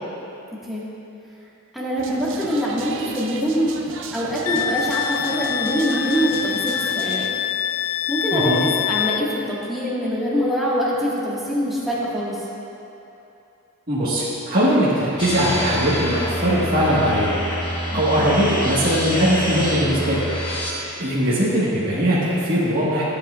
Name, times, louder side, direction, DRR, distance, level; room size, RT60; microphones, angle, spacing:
voice 1, 1.7-3.7 4.1-7.2 8.1-12.4 17.9-18.2, equal, ahead, -9 dB, 1.7 m, -24 dB
sound 1, 2.0-7.3, right 4 dB, 60° right, 0.6 m, -35 dB
Wind instrument woodwind instrument, 4.4-9.2, left 9 dB, 70° left, 0.3 m, -25 dB
voice 2, 8.3-8.6 13.9-17.4 17.7-20.2 20.7-23.0, equal, 40° right, -10 dB, 1.6 m, -20 dB
sound 2, 15.2-20.7, equal, 20° left, 1.3 m, -27 dB
15.5 x 8.4 x 2.5 m, 2.9 s
head